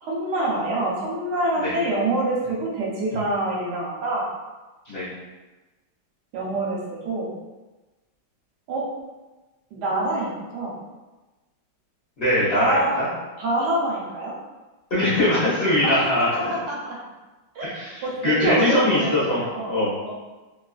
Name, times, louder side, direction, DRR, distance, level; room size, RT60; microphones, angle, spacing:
voice 1, 0.0-4.3 6.3-7.4 8.7-8.9 9.7-10.8 12.5-13.0 13.4-14.4 15.8-15.9 16.3-17.0 17.5-17.8 18.0-20.1, right 1 dB, 70° right, -4 dB, 1.0 m, -26 dB
voice 2, 12.2-13.1 14.9-16.6 17.6-19.9, left 1 dB, 45° left, -13 dB, 0.9 m, -22 dB
3.1 x 2.6 x 2.4 m, 1.2 s
omnidirectional pair, 2.3 m